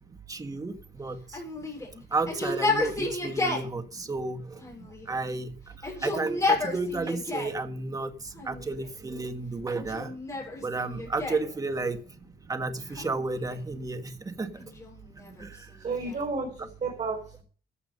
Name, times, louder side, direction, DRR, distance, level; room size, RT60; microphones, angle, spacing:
voice 1, 0.3-1.4 2.1-4.6 5.1-10.1 10.6-12.0 12.5-14.7 15.4-15.7, right 3 dB, 20° right, 1.6 m, -32 dB
Yell, 1.3-3.7 4.6-5.3 5.7-7.6 8.3-9.0 9.7-11.5 12.9-13.7 14.6-16.3, left 3 dB, 20° left, 7.2 m, -32 dB
voice 2, 15.8-17.4, right 4 dB, 45° right, 4.4 m, -33 dB
15.0 x 8.5 x 5.4 m
cardioid pair, 145°, 17 cm